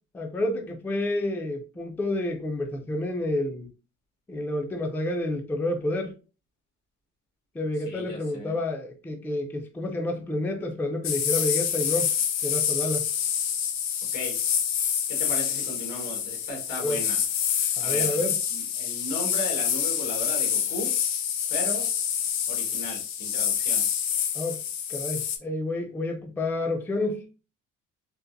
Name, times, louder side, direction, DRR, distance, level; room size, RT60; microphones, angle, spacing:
voice 1, 0.1-3.7 4.3-6.1 7.5-12.1 12.4-13.1 16.8-17.0 17.8-18.4 24.3-24.6 24.9-27.3, left 1 dB, 5° left, 0.3 m, -29 dB
voice 2, 7.9-8.6 14.1-14.4 15.1-17.2 17.8-18.2 18.5-20.9 21.5-21.9 22.5-23.8, left 1 dB, 90° left, 1.5 m, -36 dB
Snake Pit, 11.0-25.4, left 8 dB, 60° left, 0.6 m, -27 dB
3.9 x 2.4 x 2.5 m
cardioid pair, 155°, 31 cm